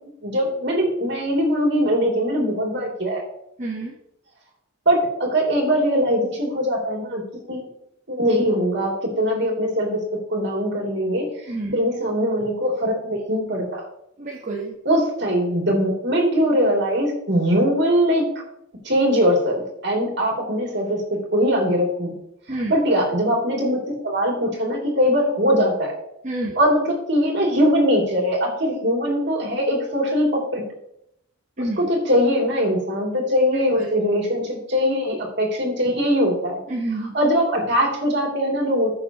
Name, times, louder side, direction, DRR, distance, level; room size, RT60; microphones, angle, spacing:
voice 1, 0.2-3.2 4.8-7.2 7.5-7.6 8.1-10.0 10.3-13.8 14.8-18.2 18.8-19.6 19.8-22.1 22.7-25.9 26.5-30.6 31.8-36.6 37.1-38.9, equal, 55° right, -1 dB, 3.0 m, -21 dB
voice 2, 3.6-3.9 11.5-11.8 14.2-14.8 22.5-22.7 26.2-26.5 31.6-31.9 33.5-33.9 36.7-37.1, right 2 dB, 35° right, -3 dB, 1.3 m, -28 dB
14.5 x 6.5 x 3.0 m, 0.77 s
head